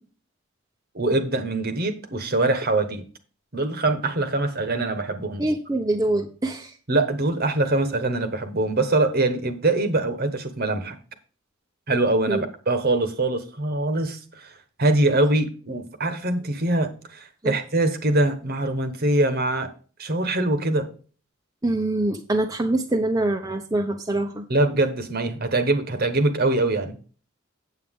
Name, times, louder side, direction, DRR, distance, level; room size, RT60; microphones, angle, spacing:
voice 1, 0.9-3.0 3.5-5.4 6.9-11.0 11.9-14.5 14.8-19.7 20.0-20.9 24.5-27.0, right 2 dB, 50° right, 9 dB, 1.2 m, -23 dB
voice 2, 5.4-6.7 12.3-12.5 17.4-17.6 21.6-24.5, right 2 dB, 15° right, 3 dB, 0.7 m, -24 dB
8.3 x 8.2 x 3.7 m, 0.39 s
head